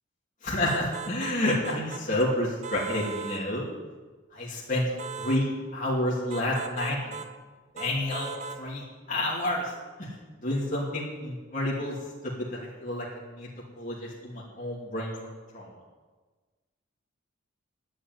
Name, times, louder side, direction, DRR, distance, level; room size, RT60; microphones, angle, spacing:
voice 1, 0.4-3.7 4.3-4.9 5.2-7.1 7.7-8.3 8.6-9.7 10.0-10.2 10.4-11.9 12.2-13.5 13.8-15.7, left 1 dB, 40° left, -6 dB, 3.1 m, -29 dB
sound 1, 0.7-2.3 2.6-3.5 5.0-5.4 6.3-7.3 7.8-8.6, right 5 dB, 35° right, 0.8 m, -39 dB
12.5 x 8.2 x 9.4 m, 1.3 s
head